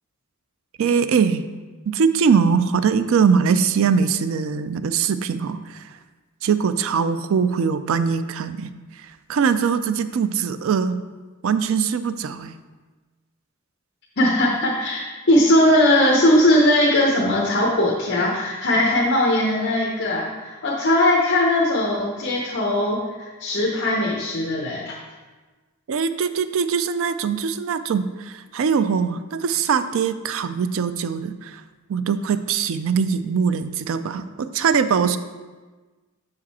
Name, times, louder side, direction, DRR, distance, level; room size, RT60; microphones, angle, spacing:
voice 1, 0.8-1.4 1.9-5.8 6.4-8.7 9.0-11.0 11.4-12.5 25.9-31.6 31.9-35.2, right 6 dB, 65° right, 11 dB, 0.4 m, -22 dB
voice 2, 14.2-24.9, left 1 dB, 55° left, -3 dB, 0.9 m, -19 dB
6.2 x 5.0 x 4.2 m, 1.3 s
head